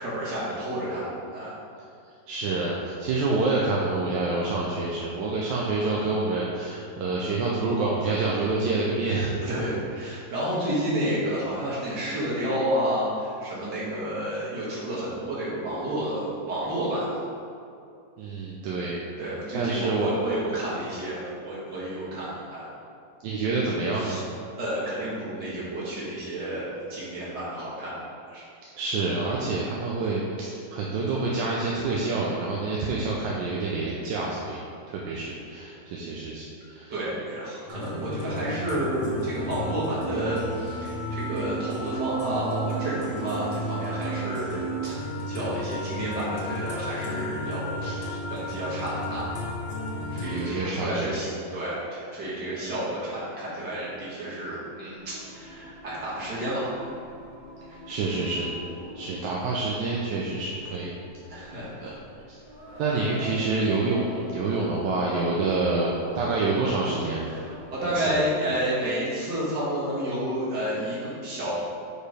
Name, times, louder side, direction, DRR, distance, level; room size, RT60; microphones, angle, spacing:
voice 1, 0.0-1.6 9.4-17.1 19.2-22.6 23.9-24.2 24.6-28.0 28.3-28.5 29.5-29.6 36.9-49.3 50.1-56.8 61.3-62.0 67.3-71.5, right 1 dB, 65° right, -8 dB, 2.3 m, -30 dB
voice 2, 2.3-9.3 18.2-19.0 19.5-20.1 23.2-24.2 28.8-34.6 34.9-36.9 50.0-51.1 57.7-58.5 58.9-60.9 61.3-61.4 61.8-61.9 62.3-62.4 62.8-67.3 67.8-68.2, right 3 dB, 80° right, -3 dB, 1.3 m, -27 dB
sound 1, 37.7-50.5, right 1 dB, 75° left, 1.8 m, -33 dB
Singing, 54.9-68.1, equal, 25° right, 1.2 m, -44 dB
5.0 x 4.6 x 4.9 m, 2.5 s
omnidirectional pair, 2.0 m